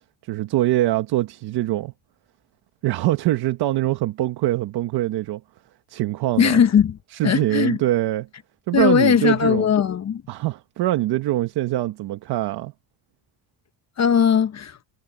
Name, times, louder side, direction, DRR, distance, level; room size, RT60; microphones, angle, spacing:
voice 1, 0.2-1.9 2.8-5.4 5.9-6.6 7.1-8.3 8.7-9.7 10.3-12.7, right 15 dB, 75° right, 1.5 m, -23 dB
voice 2, 6.4-7.0 7.2-7.8 8.7-10.2 14.0-14.8, left 7 dB, 40° left, 1.2 m, -18 dB
cardioid pair, 100°, 39 cm